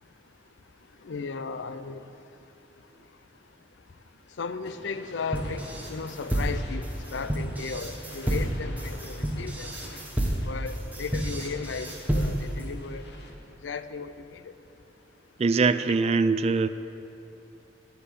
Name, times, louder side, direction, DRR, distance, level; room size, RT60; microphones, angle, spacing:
voice 1, 1.0-2.1 4.4-6.9 7.1-9.7 10.5-13.0 13.6-14.5, left 5 dB, 75° left, 12 dB, 0.5 m, -36 dB
sound 1, 4.7-13.6, left 2 dB, 60° left, 1.2 m, -47 dB
sound 2, 5.3-12.6, right 1 dB, 10° right, 1.0 m, -30 dB
voice 2, 15.4-16.7, right 4 dB, 35° right, 13 dB, 0.3 m, -22 dB
8.2 x 7.8 x 8.4 m, 2.9 s
head